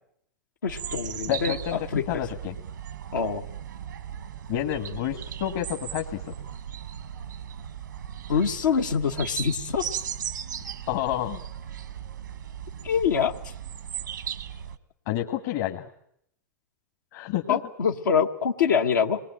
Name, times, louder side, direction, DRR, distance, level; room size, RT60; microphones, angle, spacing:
voice 1, 0.6-1.5 1.9-2.2 3.1-3.5 8.3-9.9 12.8-13.3 17.5-19.2, left 7 dB, 90° left, 3 dB, 1.3 m, -24 dB
sound 1, 0.7-14.8, right 9 dB, 90° right, 1.2 m, -37 dB
voice 2, 1.3-2.6 4.5-6.3 10.9-11.4 15.0-15.9 17.1-17.6, left 12 dB, 60° left, 3 dB, 1.7 m, -29 dB
26.0 x 20.5 x 9.1 m, 0.75 s
hypercardioid pair, 110°, 10 cm